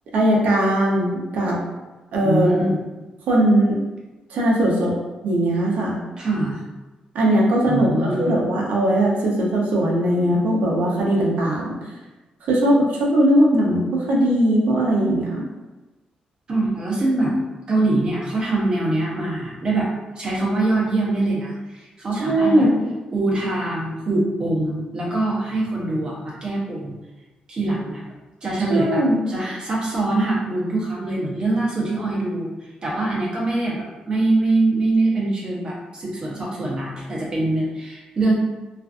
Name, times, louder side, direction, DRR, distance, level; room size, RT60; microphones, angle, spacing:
voice 1, 0.1-1.6 2.1-2.6 3.3-3.8 4.3-4.9 5.2-6.0 7.1-11.8 12.5-15.4 22.1-22.7 28.7-29.2, right 1 dB, 80° right, -3 dB, 0.6 m, -19 dB
voice 2, 2.2-2.8 6.2-6.6 7.6-8.4 16.5-17.3 17.7-19.9 20.2-22.7 23.1-27.0 27.5-28.0 28.4-29.0 29.3-32.5 32.8-38.3, right 2 dB, 30° right, -5 dB, 0.7 m, -23 dB
2.4 x 2.4 x 2.4 m, 1.1 s
wide cardioid pair, 170°, 3 cm